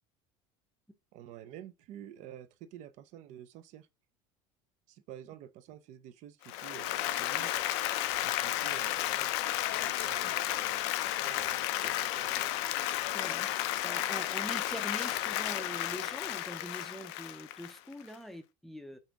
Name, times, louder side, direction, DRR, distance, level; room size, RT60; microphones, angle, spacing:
voice 1, 1.1-3.9 4.9-7.6 8.2-9.4 9.7-12.6, right 11 dB, 60° right, 0.5 m, -50 dB
Applause, 6.4-18.1, left 14 dB, 85° left, 0.4 m, -33 dB
voice 2, 13.1-13.5 13.8-19.0, equal, ahead, 0.5 m, -43 dB
5.5 x 2.5 x 3.5 m
cardioid pair, 130°, 14 cm